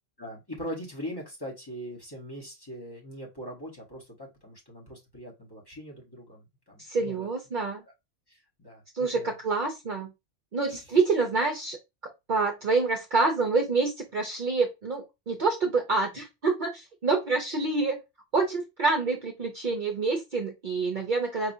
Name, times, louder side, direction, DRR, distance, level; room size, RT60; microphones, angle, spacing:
voice 1, 0.2-7.3 8.3-9.3, equal, 20° left, -3 dB, 1.2 m, -41 dB
voice 2, 6.8-7.8 8.9-10.1 10.5-11.8 12.3-18.0 18.3-21.5, right 4 dB, 50° right, 2 dB, 0.7 m, -27 dB
4.6 x 2.8 x 2.6 m, 0.22 s
omnidirectional pair, 1.2 m